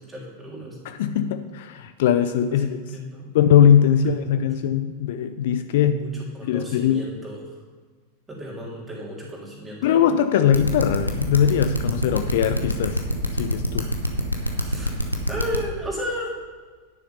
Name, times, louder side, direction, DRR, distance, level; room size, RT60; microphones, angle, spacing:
voice 1, 0.1-0.8 2.5-3.3 4.0-4.5 5.8-6.1 6.4-7.5 8.3-10.0 14.6-14.9 15.3-16.3, equal, 10° right, -4 dB, 3.3 m, -34 dB
voice 2, 0.8-2.7 3.3-5.9 6.4-7.1 9.8-13.0 13.4-13.9, left 9 dB, 55° left, 9 dB, 0.5 m, -20 dB
sound 1, 10.5-15.6, left 1 dB, 85° left, 1.0 m, -24 dB
10.5 x 6.6 x 5.6 m, 1.5 s
figure-of-eight pair, 90°, 0 cm